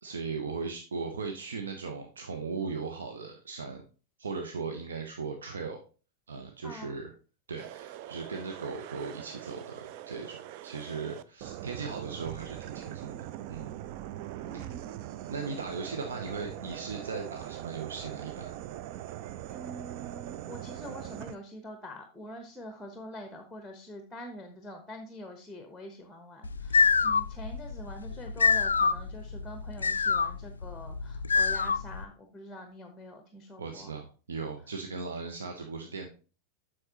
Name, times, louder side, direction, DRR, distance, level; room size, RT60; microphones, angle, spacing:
voice 1, 0.0-3.8 4.2-5.8 6.3-7.1 7.5-13.7 14.5-14.8 15.3-18.6 33.6-36.1, right 4 dB, 70° right, 4 dB, 0.7 m, -38 dB
sound 1, 7.6-21.4, right 12 dB, 45° right, 0.4 m, -42 dB
voice 2, 14.5-14.9 19.5-33.9, equal, 5° left, 6 dB, 1.0 m, -45 dB
sound 2, 26.4-32.0, left 5 dB, 75° left, 0.3 m, -27 dB
7.7 x 6.1 x 2.9 m, 0.36 s
figure-of-eight pair, 90°, 0 cm